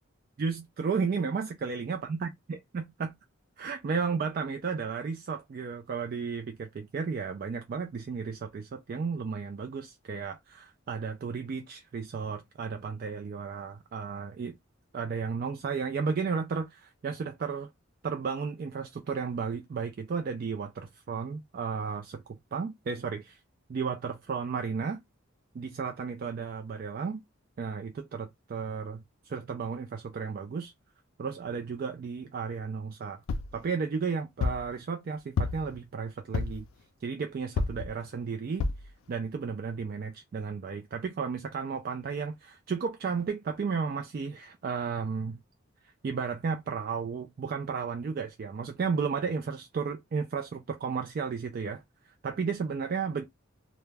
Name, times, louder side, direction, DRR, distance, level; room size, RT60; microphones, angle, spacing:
voice 1, 0.4-3.1 3.6-14.5 14.9-17.7 18.0-23.4 23.7-25.0 25.5-27.2 27.6-30.7 31.2-33.2 33.5-36.7 37.0-38.7 39.1-45.4 46.0-51.8 52.2-53.2, right 5 dB, 45° right, 0.3 m, -33 dB
sound 1, 33.3-33.6 34.4-34.7 35.4-35.8 36.3-36.7 37.6-37.9 38.6-38.9 39.5-39.6 39.8-39.9, left 4 dB, 80° left, 0.4 m, -30 dB
2.2 x 2.0 x 3.2 m
head